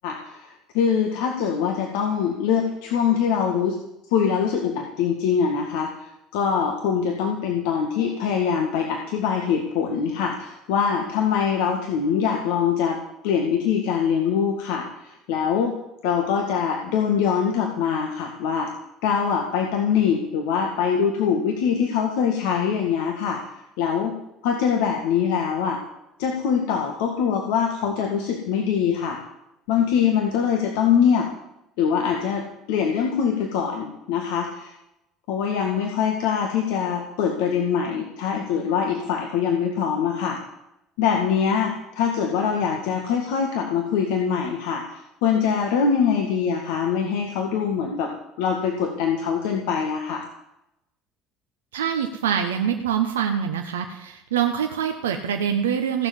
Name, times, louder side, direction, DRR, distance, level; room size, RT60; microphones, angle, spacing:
voice 1, 0.0-3.8 4.1-13.0 13.2-15.7 16.0-18.7 19.0-23.4 23.8-24.1 24.4-25.8 26.2-29.2 29.7-31.3 31.8-34.7 35.3-40.4 41.0-48.1 48.4-50.2, left 7 dB, 75° left, 2 dB, 2.0 m, -23 dB
voice 2, 51.7-56.1, right 8 dB, 85° right, 3 dB, 1.2 m, -25 dB
16.5 x 7.2 x 9.7 m, 0.88 s
hypercardioid pair, 70°, 0 cm